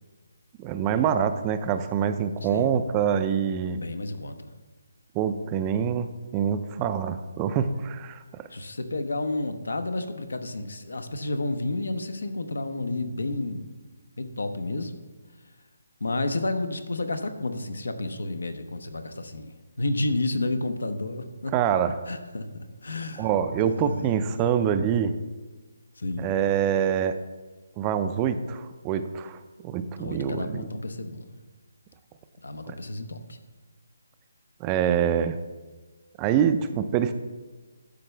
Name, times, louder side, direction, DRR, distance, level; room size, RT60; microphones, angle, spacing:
voice 1, 0.6-3.8 5.1-6.1 6.3-8.2 21.5-21.9 23.2-25.1 26.2-27.1 27.8-29.4 29.6-30.6 32.7-32.8 34.6-35.4 36.2-37.1, right 8 dB, 20° right, 10 dB, 0.3 m, -25 dB
voice 2, 2.4-2.8 3.7-4.5 8.5-13.7 14.2-14.9 16.0-21.5 22.1-23.3 23.6-24.2 26.0-26.4 30.0-31.3 32.4-33.4, left 2 dB, 85° left, 8 dB, 1.0 m, -31 dB
11.5 x 6.9 x 3.3 m, 1.3 s
hypercardioid pair, 165°, 0 cm